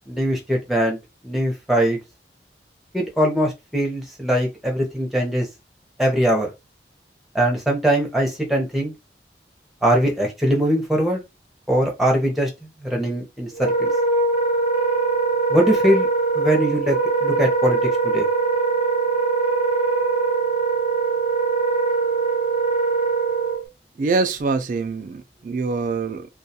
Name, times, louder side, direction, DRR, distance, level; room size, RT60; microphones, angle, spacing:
voice 1, 0.1-1.0 1.2-2.0 2.9-5.5 6.0-6.5 7.3-8.9 9.8-11.2 11.7-12.5 12.8-13.9 15.5-16.1 16.3-17.0 17.2-18.3, right 1 dB, ahead, 0.6 m, -21 dB
Wind instrument woodwind instrument, 13.5-23.6, right 4 dB, 40° left, 0.8 m, -21 dB
voice 2, 24.0-26.3, right 4 dB, 45° right, 0.3 m, -24 dB
2.2 x 2.2 x 2.7 m
head